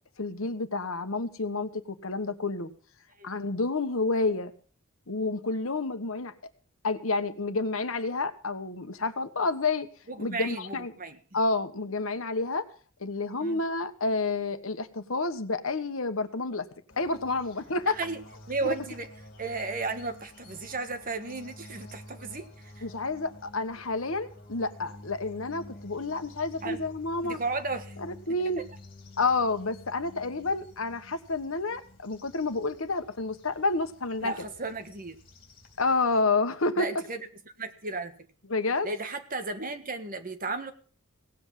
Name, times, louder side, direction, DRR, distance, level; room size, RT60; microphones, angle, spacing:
voice 1, 0.2-2.7 3.2-4.5 5.1-6.3 6.8-9.9 10.2-10.9 11.3-12.6 13.0-16.7 17.0-18.0 18.6-18.7 22.8-27.4 28.0-28.6 29.2-34.3 35.8-36.9 38.5-38.9, left 3 dB, 65° left, 9 dB, 1.3 m, -29 dB
voice 2, 10.1-11.2 13.4-13.6 18.0-18.2 18.5-19.1 19.4-22.8 26.6-26.8 27.2-28.0 34.2-35.2 36.8-37.3 37.6-38.1 38.8-40.7, right 3 dB, 40° right, 8 dB, 1.6 m, -34 dB
sound 1, 16.9-36.2, left 1 dB, 45° left, 3.4 m, -50 dB
17.5 x 8.0 x 7.6 m, 0.43 s
head